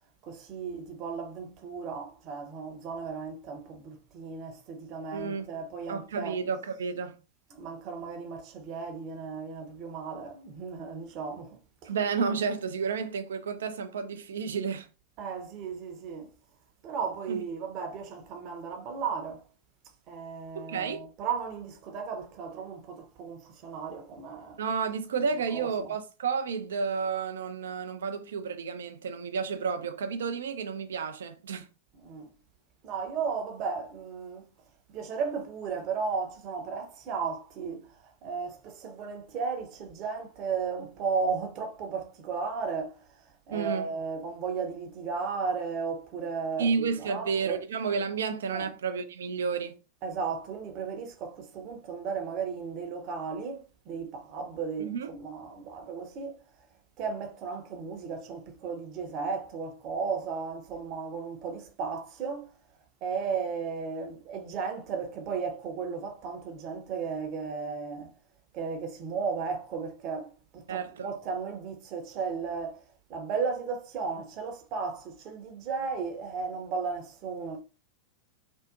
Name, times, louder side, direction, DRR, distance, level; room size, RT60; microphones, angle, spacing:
voice 1, 0.2-6.4 7.5-11.9 15.2-16.3 16.8-19.4 20.1-24.6 25.3-25.9 31.9-32.3 32.8-34.5 34.9-47.6 48.5-48.7 50.0-56.4 57.0-62.5 63.0-68.1 68.5-77.6, right 5 dB, 40° right, 0.7 m, -35 dB
voice 2, 5.1-5.5 5.9-7.2 11.8-14.9 17.3-17.4 20.5-21.0 24.6-31.7 43.5-43.9 46.6-49.8 54.8-55.1 70.7-71.1, right 5 dB, 65° right, 0.4 m, -31 dB
2.6 x 2.5 x 2.4 m
figure-of-eight pair, 90°, 0 cm